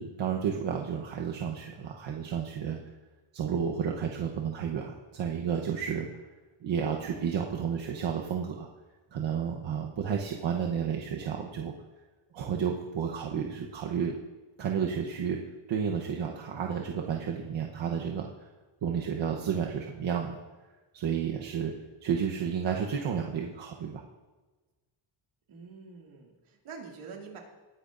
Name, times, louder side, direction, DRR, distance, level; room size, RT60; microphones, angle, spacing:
voice 1, 0.0-2.8 3.3-6.1 6.6-8.7 9.1-11.7 12.3-14.2 14.6-15.4 15.7-18.3 18.8-20.4 20.9-21.7 22.0-24.0, right 7 dB, 65° right, 0 dB, 1.1 m, -31 dB
voice 2, 25.5-27.4, right 5 dB, 80° right, 0 dB, 2.6 m, -46 dB
19.5 x 10.5 x 2.6 m, 1.2 s
wide cardioid pair, 145°, 49 cm